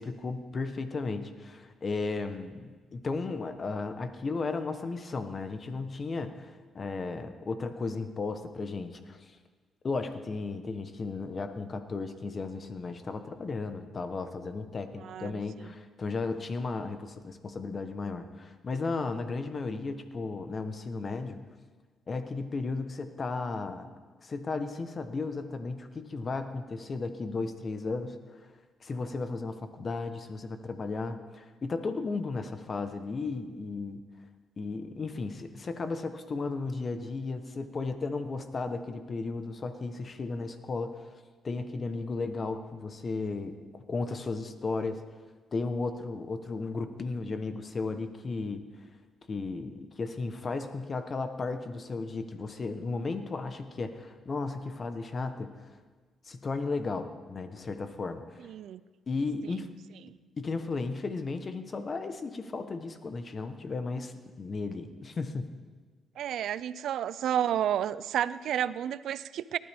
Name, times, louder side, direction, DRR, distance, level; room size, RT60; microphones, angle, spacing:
voice 1, 0.0-9.3 9.8-21.4 22.1-23.9 24.2-28.5 28.8-34.0 34.6-45.0 45.5-48.6 49.3-55.7 56.2-58.4 59.1-59.7 60.4-65.5, left 3 dB, 40° left, 8 dB, 1.1 m, -35 dB
voice 2, 15.0-15.4 58.4-58.8 60.1-60.2 66.2-69.6, right 10 dB, 75° right, 17 dB, 0.4 m, -31 dB
19.0 x 12.0 x 3.6 m, 1.4 s
cardioid pair, 90°, 0 cm